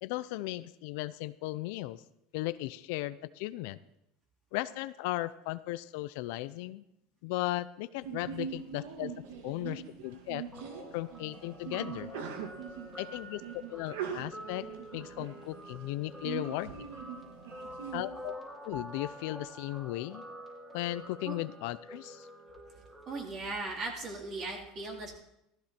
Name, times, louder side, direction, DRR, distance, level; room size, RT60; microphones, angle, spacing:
voice 1, 0.0-2.0 2.3-3.8 4.5-6.8 7.2-9.1 9.4-10.4 10.9-12.1 13.0-13.4 13.7-14.7 14.9-16.8 17.9-18.3 18.6-20.2 20.7-22.3, left 17 dB, 75° left, 15 dB, 0.6 m, -36 dB
Sneeze, 8.0-18.0, right 8 dB, 85° right, 2.0 m, -42 dB
Guitar, 10.5-23.2, equal, 10° right, 3.0 m, -47 dB
voice 2, 23.1-25.1, right 3 dB, 45° right, -2 dB, 4.0 m, -38 dB
15.5 x 14.0 x 4.4 m, 0.84 s
supercardioid pair, 125°, 0 cm